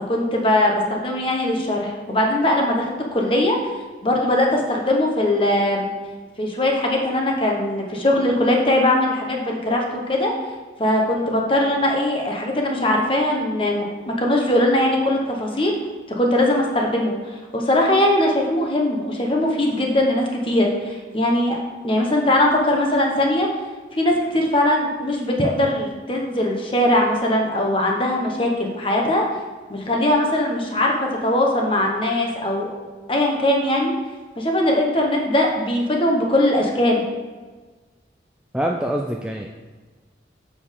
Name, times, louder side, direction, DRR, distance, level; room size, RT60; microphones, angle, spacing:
voice 1, 0.1-3.6 4.0-5.9 6.4-10.3 10.8-15.7 16.2-21.6 21.8-23.5 23.9-29.2 29.7-32.7 33.1-33.9 34.4-37.0, left 1 dB, 30° left, 0 dB, 1.1 m, -20 dB
voice 2, 38.5-39.7, right 1 dB, 5° right, 1 dB, 0.3 m, -25 dB
6.9 x 6.5 x 3.6 m, 1.4 s
head